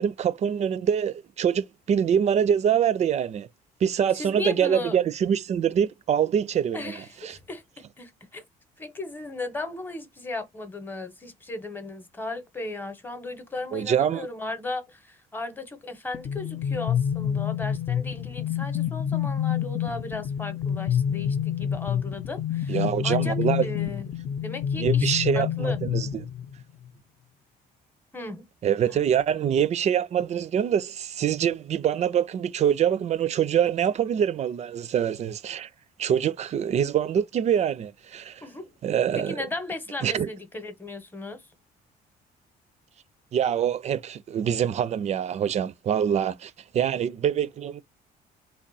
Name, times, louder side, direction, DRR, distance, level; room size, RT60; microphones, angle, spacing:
voice 1, 0.0-3.5 3.8-6.9 7.2-7.4 13.7-14.3 22.7-23.7 24.8-26.3 28.6-35.7 36.0-38.4 38.8-39.3 40.0-40.3 43.3-47.8, right 8 dB, 40° right, 0.4 m, -25 dB
voice 2, 4.1-5.0 6.7-7.6 8.0-8.4 8.8-24.1 24.4-25.8 28.1-28.5 38.4-38.7 39.1-41.4, left 2 dB, 10° left, 0.9 m, -36 dB
sound 1, 16.1-26.6, left 9 dB, 35° left, 0.5 m, -27 dB
3.5 x 2.2 x 4.0 m
cardioid pair, 110°, 17 cm